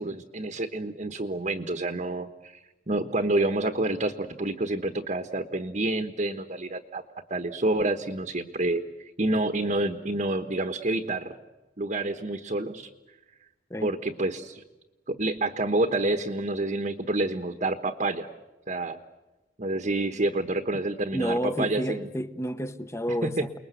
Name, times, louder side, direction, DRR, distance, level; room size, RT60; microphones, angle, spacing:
voice 1, 0.0-2.6 2.9-7.0 7.3-11.3 11.8-12.9 13.8-14.6 15.1-18.3 18.7-19.0 19.6-22.1 23.1-23.5, right 2 dB, 40° right, 1.1 m, -28 dB
voice 2, 21.1-23.6, equal, 15° left, 1.0 m, -30 dB
29.0 x 21.0 x 8.2 m
head